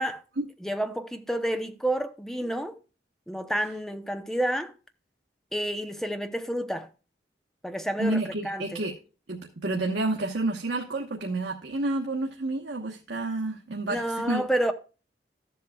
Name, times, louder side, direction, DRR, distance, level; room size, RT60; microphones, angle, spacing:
voice 1, 0.6-2.8 3.3-4.7 5.5-6.9 7.6-8.8 13.8-14.7, right 1 dB, 5° left, 0.8 m, -29 dB
voice 2, 8.0-9.0 9.3-14.5, right 2 dB, 85° right, 1.2 m, -29 dB
13.5 x 7.6 x 2.3 m
head